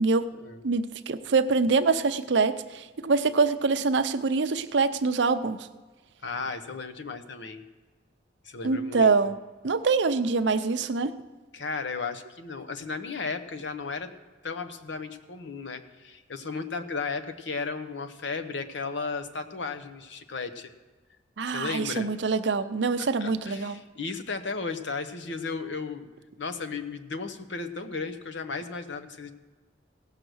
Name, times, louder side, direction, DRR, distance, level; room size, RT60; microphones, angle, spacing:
voice 1, 0.6-5.7 8.6-9.4 9.6-11.2 21.4-23.8, right 4 dB, 65° right, 11 dB, 0.6 m, -25 dB
voice 2, 6.2-7.7 8.4-9.1 11.5-14.1 14.4-20.7 21.5-22.1 23.0-26.1 26.4-29.3, left 4 dB, 70° left, 8 dB, 0.9 m, -35 dB
16.5 x 6.6 x 6.2 m, 1.3 s
head